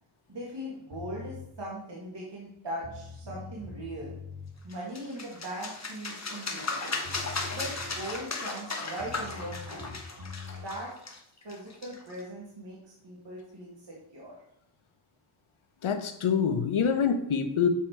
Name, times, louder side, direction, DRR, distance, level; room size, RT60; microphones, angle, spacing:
voice 1, 0.3-4.2 4.6-7.0 7.5-10.0 10.6-10.9 11.4-12.8 13.0-14.3, right 1 dB, 60° right, -5 dB, 1.9 m, -40 dB
sound 1, 0.9-1.5 2.5-2.6 2.8-4.5 6.7-6.8 7.0-8.2 9.0-10.7, left 4 dB, 90° right, 1.3 m, -43 dB
sound 2, 4.7-12.2, left 3 dB, 35° left, 1.1 m, -36 dB
voice 2, 15.8-17.7, left 7 dB, 80° left, 8 dB, 0.8 m, -26 dB
7.2 x 4.3 x 4.7 m, 0.78 s
wide cardioid pair, 110°, 49 cm